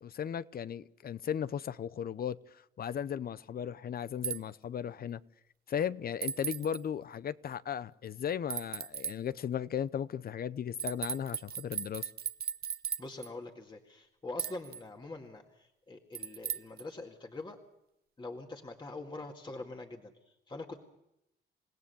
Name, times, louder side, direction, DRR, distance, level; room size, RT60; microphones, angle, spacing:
voice 1, 0.0-2.4 2.8-5.2 5.7-12.1, left 8 dB, 50° left, 0.7 m, -36 dB
sound 1, 4.2-4.4 6.2-6.8 8.5-9.2 10.8-13.3 14.4-14.8 16.1-16.8, right 8 dB, 50° right, 0.8 m, -37 dB
voice 2, 13.0-17.6 18.2-20.1 20.5-20.8, left 2 dB, 25° left, 2.0 m, -44 dB
28.5 x 17.0 x 7.0 m
cardioid pair, 90°, 20 cm